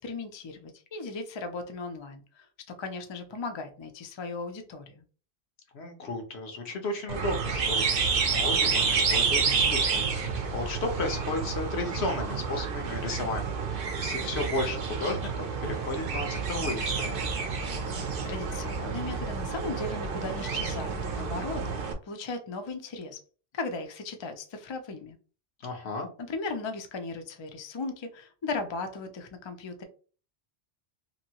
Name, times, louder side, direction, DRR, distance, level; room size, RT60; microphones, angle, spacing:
voice 1, 0.0-5.0 18.0-23.2 23.5-25.2 26.2-29.8, left 3 dB, 45° left, 6 dB, 0.4 m, -37 dB
voice 2, 5.7-17.3 25.6-26.1, left 2 dB, 80° left, 3 dB, 1.1 m, -34 dB
sound 1, 7.1-21.9, right 5 dB, 60° right, 0.7 m, -29 dB
2.9 x 2.6 x 2.8 m, 0.38 s
omnidirectional pair, 1.1 m